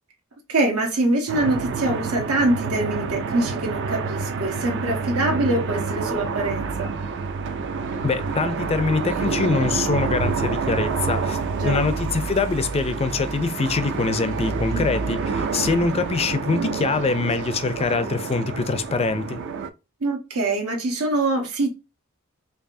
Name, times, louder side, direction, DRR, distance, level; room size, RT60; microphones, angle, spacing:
voice 1, 0.5-6.9 11.5-11.9 14.7-15.1 20.0-21.7, right 2 dB, 85° right, 1.1 m, -24 dB
sound 1, 1.3-19.7, right 4 dB, 55° right, 0.4 m, -28 dB
voice 2, 8.0-19.4, left 4 dB, 25° left, 0.4 m, -24 dB
4.6 x 2.7 x 2.6 m
head